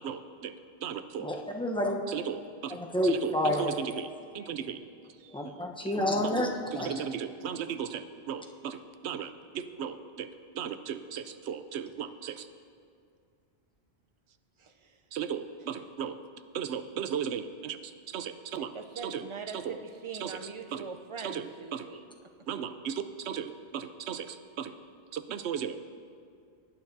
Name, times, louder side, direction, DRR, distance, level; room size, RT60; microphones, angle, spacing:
voice 1, 0.0-0.5 0.8-1.3 2.1-2.8 3.0-4.8 5.2-5.5 6.2-6.4 6.7-10.3 10.5-12.5 15.1-16.2 16.5-18.7 19.0-19.3 19.5-19.8 20.2-20.4 20.7-20.9 21.2-21.9 22.5-24.7 25.1-25.8, right 8 dB, 90° right, 11 dB, 0.9 m, -36 dB
voice 2, 1.2-2.0 2.7-3.8 5.3-6.9, left 1 dB, 5° left, 0 dB, 0.7 m, -29 dB
voice 3, 14.6-15.0 18.6-22.0, right 5 dB, 40° right, 5 dB, 0.5 m, -42 dB
19.0 x 9.3 x 2.7 m, 2.3 s
omnidirectional pair, 1.1 m